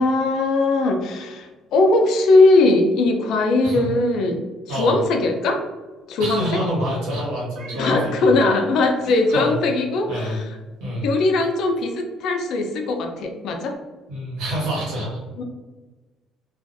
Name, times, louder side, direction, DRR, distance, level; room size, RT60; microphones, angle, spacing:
voice 1, 0.0-4.4 4.7-5.7 6.1-6.6 7.8-10.5 11.0-13.8 15.4-15.5, left 2 dB, 70° left, 4 dB, 0.4 m, -20 dB
voice 2, 6.2-8.3 9.0-9.6 10.1-10.4 10.8-11.1 14.1-15.2, equal, 90° right, -5 dB, 1.3 m, -27 dB
Meow, 7.6-8.3 9.0-9.1 9.6-9.7 13.7-13.8, right 4 dB, 55° right, 0.5 m, -40 dB
2.5 x 2.3 x 2.5 m, 1.2 s
cardioid pair, 105°, 0 cm